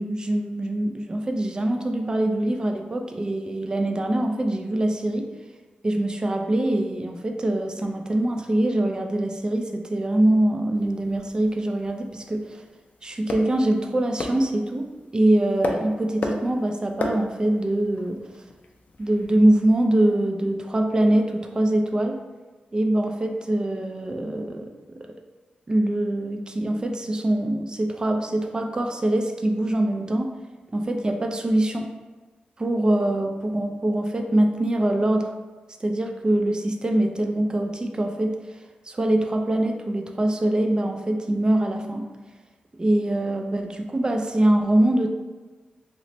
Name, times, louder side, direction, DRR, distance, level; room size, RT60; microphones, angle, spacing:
voice 1, 0.0-5.3 5.8-12.6 13.0-18.2 19.0-22.2 22.7-25.1 25.7-30.3 30.7-31.9 32.6-35.3 35.8-38.4 38.9-42.1 42.8-45.1, right 1 dB, 25° right, 4 dB, 0.3 m, -23 dB
sound 1, 10.7-19.6, left 2 dB, 55° left, 0.4 m, -36 dB
3.0 x 2.0 x 4.0 m, 1.3 s
cardioid pair, 80°, 3 cm